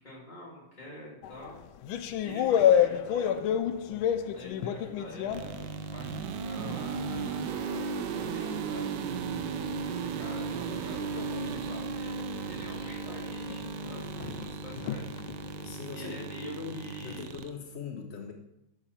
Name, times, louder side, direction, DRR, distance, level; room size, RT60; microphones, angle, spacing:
voice 1, 0.0-1.6 2.2-3.4 4.3-8.8 9.9-15.2 15.9-17.3, left 1 dB, 20° left, -5 dB, 2.8 m, -46 dB
sound 1, 1.2-6.4 6.8-15.7, left 9 dB, 85° left, 1.4 m, -31 dB
sound 2, 5.3-17.5, right 5 dB, 70° right, 1.2 m, -36 dB
voice 2, 14.2-14.5 15.6-18.3, left 6 dB, 60° left, 4 dB, 0.6 m, -41 dB
11.0 x 7.0 x 4.3 m, 0.87 s
omnidirectional pair, 2.2 m